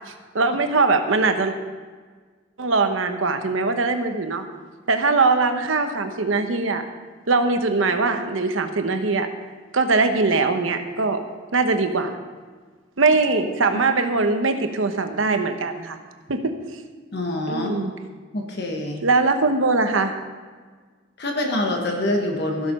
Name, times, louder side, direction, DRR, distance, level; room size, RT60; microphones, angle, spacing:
voice 1, 0.3-1.5 2.6-4.4 4.9-6.8 7.3-9.3 9.7-11.2 11.5-12.2 13.0-16.0 16.3-16.5 17.5-17.9 19.0-20.1, right 3 dB, 85° right, 7 dB, 1.0 m, -21 dB
voice 2, 17.1-17.9 18.3-19.0 21.2-22.7, left 1 dB, 55° left, 2 dB, 1.4 m, -25 dB
15.0 x 6.6 x 5.4 m, 1.5 s
head